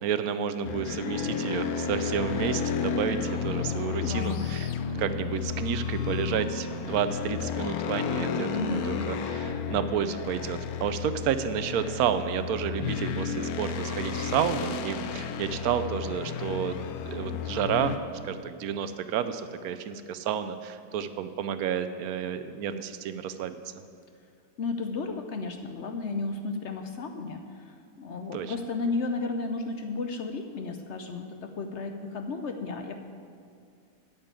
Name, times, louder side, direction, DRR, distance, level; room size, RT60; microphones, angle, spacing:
voice 1, 0.0-4.7 5.0-16.8 17.0-18.0 18.2-23.8 28.3-28.5, right 8 dB, 75° right, 11 dB, 1.0 m, -30 dB
sound 1, 0.6-18.0, left 7 dB, 75° left, 1.1 m, -32 dB
voice 2, 3.9-4.5 8.5-9.1 24.6-33.0, left 3 dB, 60° left, 6 dB, 0.8 m, -33 dB
8.9 x 6.8 x 8.8 m, 2.3 s
omnidirectional pair, 1.6 m